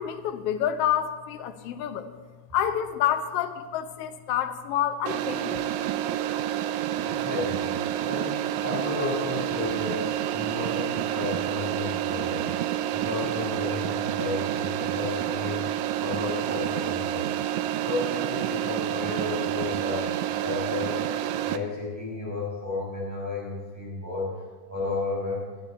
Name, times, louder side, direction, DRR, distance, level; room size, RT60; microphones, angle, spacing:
voice 1, 0.0-2.1 2.5-5.7, left 10 dB, 70° left, 8 dB, 1.5 m, -28 dB
sound 1, 5.1-21.6, right 11 dB, 85° right, 2.0 m, -29 dB
voice 2, 7.1-7.7 8.0-12.5 12.9-15.6 16.0-17.3 17.7-20.1 20.4-21.0 21.4-24.4 24.7-25.4, left 3 dB, 5° right, -5 dB, 5.4 m, -33 dB
18.0 x 11.5 x 4.4 m, 1.4 s
omnidirectional pair, 3.4 m